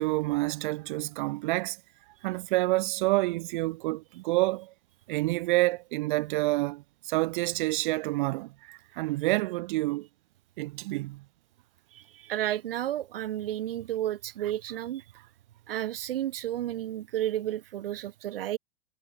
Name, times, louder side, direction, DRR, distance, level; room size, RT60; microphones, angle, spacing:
voice 1, 0.0-1.8 2.2-4.7 5.1-10.1 10.6-11.2, right 20 dB, 55° right, 1.3 m, -28 dB
voice 2, 11.9-15.0 15.7-18.6, right 12 dB, 75° right, 0.7 m, -32 dB
hypercardioid pair, 100°, 29 cm